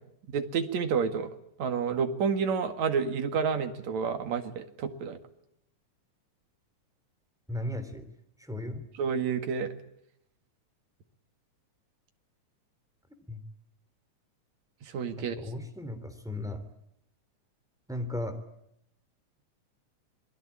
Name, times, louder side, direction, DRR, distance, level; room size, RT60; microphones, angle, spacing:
voice 1, 0.3-1.3 1.6-5.2 9.0-9.7 14.8-15.3, right 6 dB, 65° right, 7 dB, 3.1 m, -29 dB
voice 2, 7.5-8.1 8.4-8.8 13.3-13.4 15.2-16.7 17.9-18.4, left 1 dB, ahead, 7 dB, 2.9 m, -36 dB
27.0 x 21.0 x 8.6 m, 0.77 s
omnidirectional pair, 3.5 m